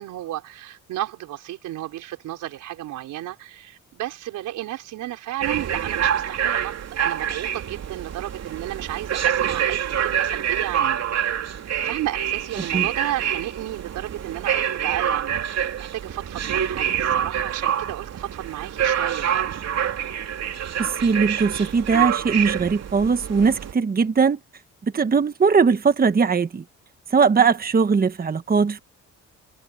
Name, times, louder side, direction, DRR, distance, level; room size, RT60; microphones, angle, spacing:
voice 1, 0.0-11.0 11.8-19.5, right 14 dB, 90° right, 5.0 m, -33 dB
sound 1, 5.4-23.7, right 9 dB, 60° right, 3.3 m, -26 dB
voice 2, 20.8-24.4 24.9-26.6 27.1-28.8, right 5 dB, 30° right, 1.2 m, -20 dB
cardioid pair, 90°, 30 cm